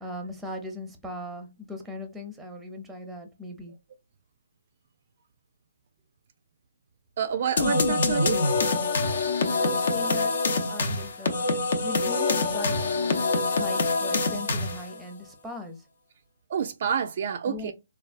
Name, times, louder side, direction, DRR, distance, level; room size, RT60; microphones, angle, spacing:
voice 1, 0.0-3.7 9.6-15.8 17.5-17.7, left 1 dB, 5° right, 0.6 m, -39 dB
voice 2, 7.2-8.4 16.5-17.7, right 7 dB, 50° right, 0.3 m, -28 dB
sound 1, 7.6-14.9, left 3 dB, 60° left, 0.7 m, -25 dB
3.3 x 2.3 x 2.4 m
hypercardioid pair, 150°, 0 cm